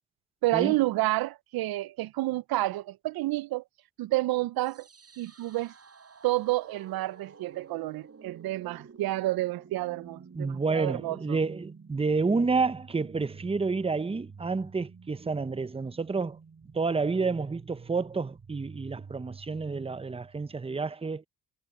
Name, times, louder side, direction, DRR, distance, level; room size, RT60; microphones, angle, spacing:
voice 1, 0.4-3.6 4.0-4.9 5.2-5.7 6.2-11.4, right 18 dB, 80° right, 0.5 m, -29 dB
sound 1, 4.6-20.6, right 5 dB, 40° right, 7.3 m, -50 dB
voice 2, 10.3-16.4 16.7-21.3, right 4 dB, 15° right, 0.7 m, -29 dB
cardioid pair, 80°, 36 cm